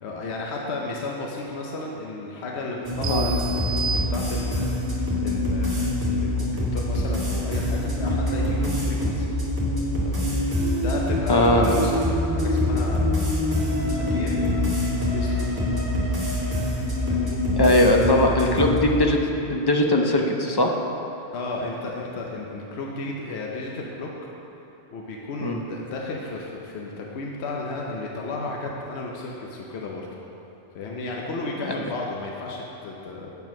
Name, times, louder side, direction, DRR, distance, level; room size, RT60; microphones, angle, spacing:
voice 1, 0.0-9.3 10.0-13.4 14.0-15.7 16.0-16.4 17.1-17.4 21.3-24.3 24.9-30.1 30.7-33.3, left 2 dB, 70° left, -1 dB, 1.0 m, -33 dB
sound 1, 2.8-18.8, left 1 dB, 20° right, 1.3 m, -25 dB
sound 2, 3.0-4.8, right 5 dB, 70° right, 0.8 m, -31 dB
voice 2, 11.3-11.7 17.6-19.2 19.5-20.7 25.4-25.6 31.6-31.7, left 1 dB, 35° left, 1 dB, 0.4 m, -20 dB
8.1 x 4.6 x 5.9 m, 2.9 s
omnidirectional pair, 1.2 m